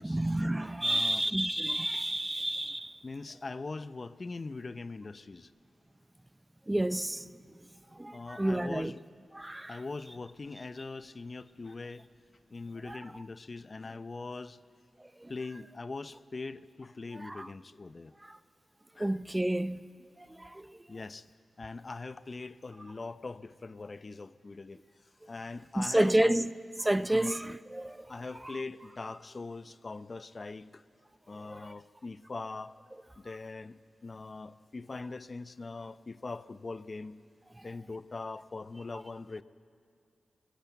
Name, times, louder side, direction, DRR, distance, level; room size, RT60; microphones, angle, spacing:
voice 1, 0.0-2.9 6.7-7.3 8.0-8.9 9.3-9.8 12.9-13.0 15.2-15.3 17.2-17.5 18.2-18.4 19.0-19.8 20.2-20.7 25.8-26.5 26.8-28.1 31.5-31.6 37.6-37.7, right 1 dB, 15° right, 0.6 m, -30 dB
voice 2, 0.8-1.3 3.0-5.5 8.1-9.0 9.7-12.1 12.5-14.6 15.3-18.1 19.0-19.2 20.9-21.3 21.6-24.8 25.3-26.5 27.1-27.3 28.1-30.8 31.3-32.8 33.2-37.2 37.6-39.4, left 3 dB, 45° left, 0.6 m, -42 dB
21.5 x 18.0 x 8.2 m
cardioid pair, 45°, 0 cm